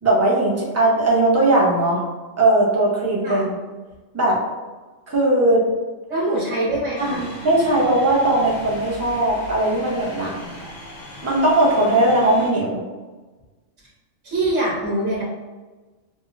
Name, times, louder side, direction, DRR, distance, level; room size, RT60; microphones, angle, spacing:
voice 1, 0.0-2.0 2.4-3.6 4.1-4.4 5.1-5.6 7.0-10.4 11.2-12.8, right 1 dB, 15° right, -5 dB, 0.5 m, -19 dB
voice 2, 6.1-7.3 14.2-15.2, right 1 dB, 65° right, -8 dB, 1.3 m, -23 dB
sound 1, 7.0-12.5, left 1 dB, 50° left, 0.8 m, -38 dB
4.9 x 2.0 x 2.5 m, 1.3 s
omnidirectional pair, 1.4 m